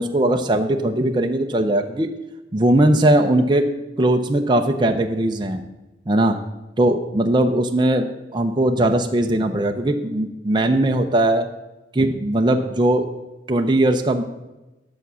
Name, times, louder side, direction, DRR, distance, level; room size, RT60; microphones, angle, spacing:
voice 1, 0.0-2.1 2.5-3.7 4.0-5.6 6.1-6.4 6.8-11.5 11.9-13.1 13.5-14.2, right 1 dB, 25° right, 4 dB, 0.6 m, -19 dB
10.5 x 6.9 x 6.1 m, 1.1 s
head